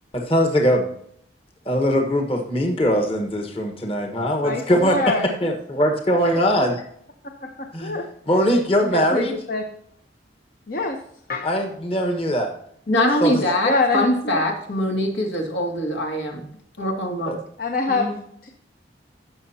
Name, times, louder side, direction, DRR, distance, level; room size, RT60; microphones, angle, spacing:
voice 1, 0.1-0.9 1.6-6.8 7.7-8.0 8.3-9.3 11.4-12.5 13.2-13.4 17.3-17.4, equal, 30° left, 3 dB, 1.3 m, -21 dB
voice 2, 4.4-5.3 7.4-8.4 8.9-9.6 10.7-11.0 11.3-11.5 13.6-14.4 17.6-18.1 18.4-18.5, left 3 dB, 50° left, 3 dB, 0.9 m, -25 dB
voice 3, 12.9-16.5 16.8-17.4 17.9-18.2, left 1 dB, 80° left, 1 dB, 2.4 m, -23 dB
16.0 x 6.5 x 2.8 m, 0.67 s
head